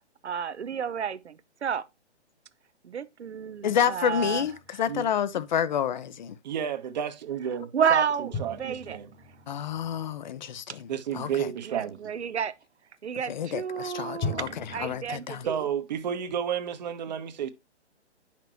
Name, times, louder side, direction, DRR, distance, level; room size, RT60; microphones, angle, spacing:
voice 1, 0.2-1.8 2.8-4.4 7.7-9.0 11.7-12.5 13.0-15.6, right 7 dB, 70° right, 0.8 m, -30 dB
voice 2, 3.6-6.4 9.5-11.5 13.2-15.5, left 8 dB, 40° left, 0.7 m, -29 dB
sound 1, 4.1-5.5 8.3-10.9 14.2-15.2, left 3 dB, 15° left, 1.2 m, -39 dB
voice 3, 6.4-9.1 10.9-12.1 15.5-17.5, right 8 dB, 40° right, 1.1 m, -31 dB
9.8 x 6.0 x 2.9 m
figure-of-eight pair, 135°, 35 cm